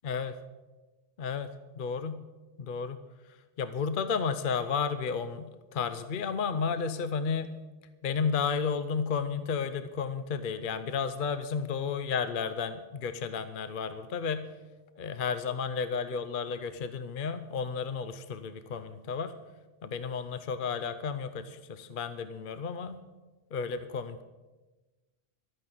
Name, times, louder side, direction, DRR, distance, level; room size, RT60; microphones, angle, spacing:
voice 1, 1.2-1.5 1.8-2.2 2.6-3.0 3.6-7.5 8.0-14.4 15.0-19.3 19.8-23.0 23.5-24.2, left 6 dB, 55° left, 11 dB, 0.8 m, -32 dB
12.5 x 9.4 x 7.8 m, 1.2 s
omnidirectional pair, 1.1 m